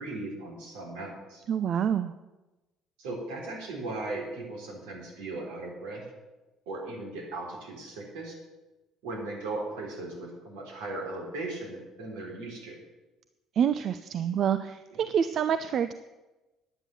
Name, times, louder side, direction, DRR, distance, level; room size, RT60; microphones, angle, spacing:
voice 1, 0.0-1.4 3.0-6.1 6.7-8.4 9.0-12.8 14.9-15.1, right 2 dB, 75° right, -1 dB, 3.6 m, -37 dB
voice 2, 1.5-2.1 13.6-15.9, right 8 dB, 55° right, 11 dB, 0.6 m, -27 dB
10.5 x 9.0 x 7.0 m, 1.1 s
hypercardioid pair, 55°, 0 cm